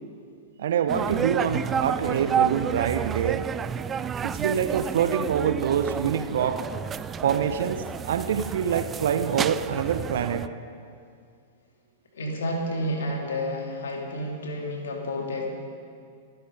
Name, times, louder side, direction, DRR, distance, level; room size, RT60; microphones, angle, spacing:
voice 1, 0.6-3.5 4.2-6.6 7.2-10.5, right 8 dB, 60° right, 10 dB, 0.8 m, -25 dB
sound 1, 0.9-10.5, right 7 dB, 20° right, 0.4 m, -30 dB
voice 2, 12.1-15.5, left 1 dB, 65° left, 1 dB, 3.1 m, -30 dB
25.5 x 10.5 x 5.3 m, 2.3 s
figure-of-eight pair, 100°, 0 cm